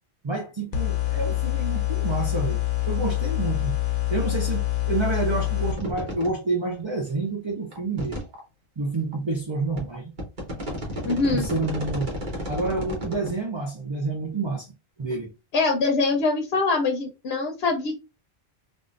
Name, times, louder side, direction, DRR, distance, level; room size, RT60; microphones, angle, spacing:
voice 1, 0.2-2.6 2.8-3.7 4.1-8.2 8.8-10.1 11.3-12.2 12.5-14.7 15.0-15.3, right 3 dB, 35° right, 0.6 m, -28 dB
sound 1, 0.7-5.7, left 16 dB, 55° left, 0.8 m, -26 dB
sound 2, 5.8-6.3 6.8-6.9 7.7-8.4 9.1-9.2 9.8-13.3, equal, 50° right, 1.3 m, -32 dB
voice 2, 11.0-11.5 15.5-17.9, left 3 dB, 85° left, 1.0 m, -23 dB
3.6 x 2.4 x 2.4 m
omnidirectional pair, 1.1 m